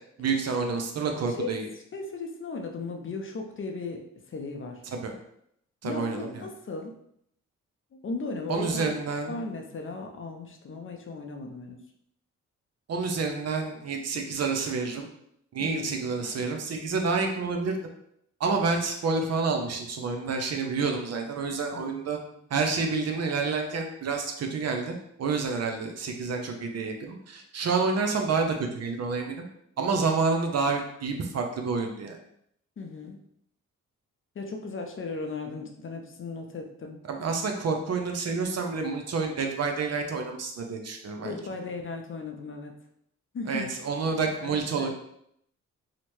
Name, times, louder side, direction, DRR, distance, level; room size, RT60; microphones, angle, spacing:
voice 1, 0.2-1.7 4.9-5.1 5.8-6.5 8.5-9.4 12.9-15.1 15.5-17.8 18.4-22.2 22.5-29.4 29.8-32.2 37.1-41.4 43.5-44.9, right 4 dB, 55° right, 3 dB, 0.6 m, -29 dB
voice 2, 1.9-4.8 5.8-6.9 7.9-8.9 9.3-11.8 15.6-15.9 21.7-21.9 22.2-22.3 32.8-33.2 34.3-37.1 41.2-42.7 43.3-43.7 44.4-44.9, left 3 dB, 40° left, 3 dB, 0.5 m, -36 dB
2.8 x 2.1 x 3.0 m, 0.72 s
supercardioid pair, 55°, 32 cm